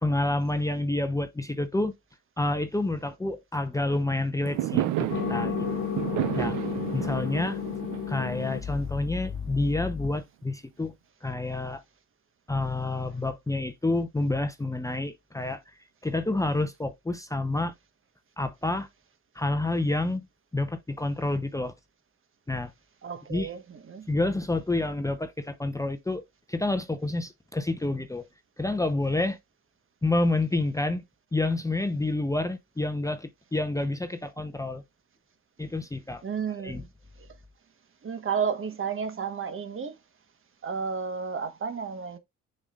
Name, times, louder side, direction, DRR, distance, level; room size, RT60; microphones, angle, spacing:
voice 1, 0.0-1.9 2.4-5.9 6.3-6.6 6.9-7.6 8.1-10.9 11.2-11.8 12.5-15.6 16.0-17.7 18.4-18.9 19.4-20.2 20.5-21.7 22.5-22.7 23.3-23.5 24.1-26.2 26.5-28.2 28.6-29.4 30.0-31.0 31.3-34.8 35.6-36.2 36.6-36.8, left 2 dB, 10° left, 0.8 m, -28 dB
Fireworks, 4.4-9.6, right 13 dB, 85° right, 0.7 m, -32 dB
sound 1, 5.1-10.1, left 10 dB, 45° left, 0.9 m, -33 dB
voice 2, 23.0-24.1 36.2-36.9 37.2-37.3 38.0-40.0 40.6-42.2, right 6 dB, 45° right, 1.3 m, -32 dB
7.0 x 5.5 x 2.5 m
cardioid pair, 90°, 30 cm